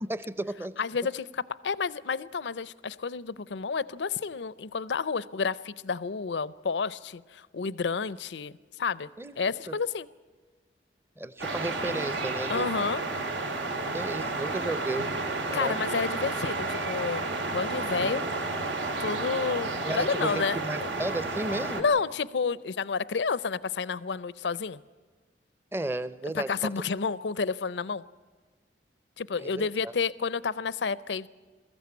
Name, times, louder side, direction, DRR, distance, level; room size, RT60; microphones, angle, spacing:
voice 1, 0.1-0.7 9.2-9.8 11.2-12.7 13.9-15.1 15.5-15.8 19.8-21.8 25.7-26.7 29.4-29.9, right 2 dB, 15° right, 15 dB, 0.6 m, -34 dB
voice 2, 0.8-9.1 9.4-10.1 12.5-13.0 15.5-18.2 19.0-20.6 21.8-24.8 26.3-28.0 29.2-31.3, left 5 dB, 80° left, 19 dB, 0.5 m, -30 dB
sound 1, 11.4-21.8, right 3 dB, 90° right, 2.4 m, -31 dB
21.5 x 14.5 x 9.5 m, 1.4 s
head